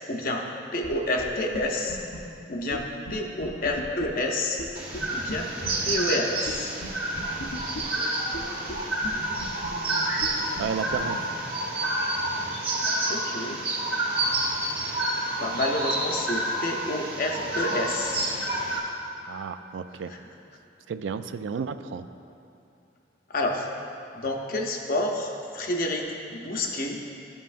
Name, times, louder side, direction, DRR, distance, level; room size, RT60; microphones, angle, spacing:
voice 1, 0.1-0.4 0.7-2.0 2.5-2.8 3.1-4.6 5.1-5.5 5.8-6.8 13.1-13.6 15.4-18.3 20.1-20.2 23.3-23.7 24.1-27.0, left 1 dB, 50° left, 1 dB, 0.7 m, -29 dB
sound 1, 0.8-0.9 1.2-1.3 1.5-1.6 1.9-2.2 2.7-2.8 3.1-3.2 3.4-4.1 4.6-4.7 4.9-5.0 5.3-5.4 5.6-5.9 6.5-6.6 6.8-6.9 7.2-7.8 8.3-8.4 8.7-8.8 9.0-9.1 9.4-9.7 10.2-10.3 10.6-10.7 10.9-11.0, left 2 dB, 90° left, 0.8 m, -35 dB
sound 2, 4.7-18.8, right 1 dB, 55° right, 1.3 m, -29 dB
voice 2, 10.6-11.2 19.2-20.1 20.9-22.1, right 6 dB, 80° right, 11 dB, 0.3 m, -32 dB
13.0 x 5.4 x 2.5 m, 2.6 s
head